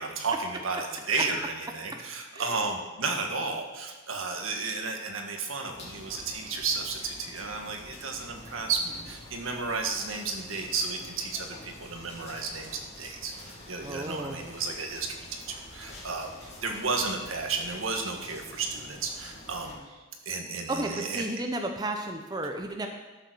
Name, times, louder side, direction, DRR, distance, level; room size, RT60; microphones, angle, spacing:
voice 1, 0.0-15.4 15.7-16.3 16.6-19.9 20.2-21.2, right 4 dB, 70° right, 3 dB, 1.7 m, -33 dB
sound 1, 5.7-19.7, left 1 dB, 30° left, 2.7 m, -47 dB
voice 2, 13.8-14.4 20.7-22.9, right 1 dB, 20° right, 3 dB, 0.8 m, -33 dB
12.5 x 7.2 x 6.2 m, 1.2 s
head